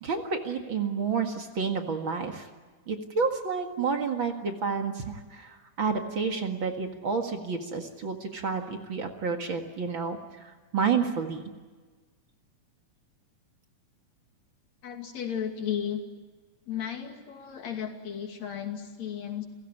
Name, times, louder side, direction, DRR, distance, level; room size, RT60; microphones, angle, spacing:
voice 1, 0.0-2.5 2.9-11.5, right 5 dB, 45° right, 4 dB, 2.3 m, -30 dB
voice 2, 14.8-16.0 16.7-19.5, left 9 dB, 60° left, 4 dB, 3.7 m, -34 dB
30.0 x 16.5 x 10.0 m, 1.4 s
omnidirectional pair, 3.5 m